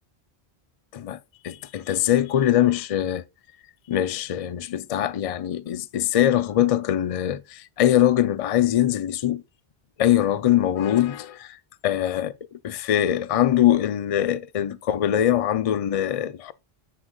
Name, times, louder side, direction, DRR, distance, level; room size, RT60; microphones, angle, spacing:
voice 1, 1.4-3.2 3.9-9.4 10.0-11.6 11.8-16.5, left 11 dB, 45° left, 0.5 m, -22 dB
10.0 x 7.6 x 2.3 m
omnidirectional pair, 1.1 m